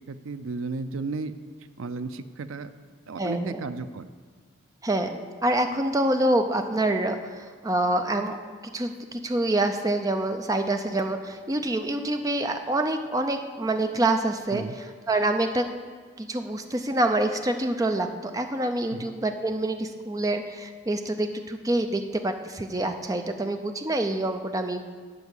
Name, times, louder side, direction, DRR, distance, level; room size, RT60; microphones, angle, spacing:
voice 1, 0.1-1.3 1.8-2.7 3.1-4.1 14.5-14.7 18.9-19.1, right 3 dB, 85° right, 12 dB, 0.5 m, -34 dB
voice 2, 3.2-3.6 4.8-14.6 15.1-15.7 16.2-24.8, right 1 dB, 15° right, 6 dB, 0.5 m, -26 dB
11.5 x 5.0 x 8.3 m, 1.5 s
head